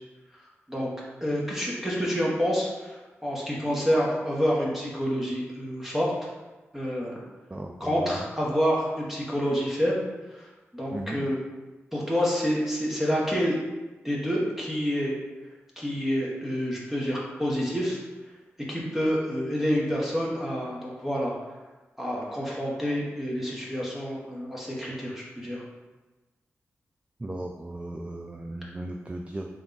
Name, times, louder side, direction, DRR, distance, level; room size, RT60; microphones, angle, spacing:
voice 1, 1.2-2.9 3.2-6.1 6.7-7.1 7.8-10.0 10.3-10.5 10.7-11.4 11.9-13.6 14.0-15.2 15.8-18.0 18.7-21.4 22.0-25.6, equal, 5° right, -4 dB, 1.0 m, -28 dB
voice 2, 7.5-8.2 10.9-11.3 27.2-29.5, right 1 dB, 20° right, 2 dB, 0.3 m, -36 dB
3.5 x 2.3 x 3.8 m, 1.2 s
cardioid pair, 50°, 5 cm